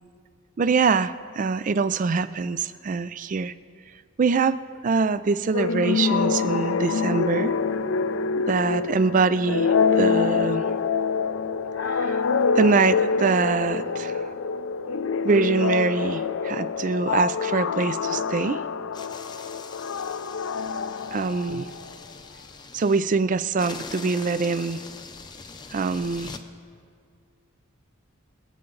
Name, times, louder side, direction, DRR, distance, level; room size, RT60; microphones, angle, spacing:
voice 1, 0.6-3.5 4.2-4.6 4.8-7.5 8.4-10.6 11.8-12.2 12.5-14.3 15.2-18.6 21.1-21.7 22.7-24.8 25.7-26.4, right 4 dB, 40° right, 15 dB, 0.4 m, -24 dB
sound 1, 5.5-21.9, left 5 dB, 65° left, 0.4 m, -26 dB
sound 2, 18.9-23.0 23.6-26.4, left 4 dB, 20° left, 0.6 m, -42 dB
25.5 x 8.8 x 3.9 m, 2.2 s
head